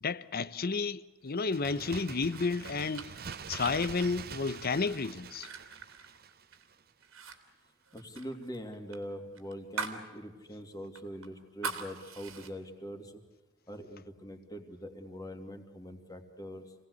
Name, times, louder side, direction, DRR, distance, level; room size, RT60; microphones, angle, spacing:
voice 1, 0.0-3.2 3.5-5.5, left 4 dB, 50° left, 0.8 m, -32 dB
Bird, 1.3-6.9 7.2-7.3, right 6 dB, 50° right, 0.9 m, -46 dB
sound 1, 2.1-6.7 7.0-7.4 7.6-10.1 10.4-10.5 10.9-12.5, right 4 dB, 90° right, 2.9 m, -42 dB
voice 2, 7.9-13.2 13.7-16.7, equal, 20° left, 2.7 m, -43 dB
27.0 x 18.5 x 8.2 m
head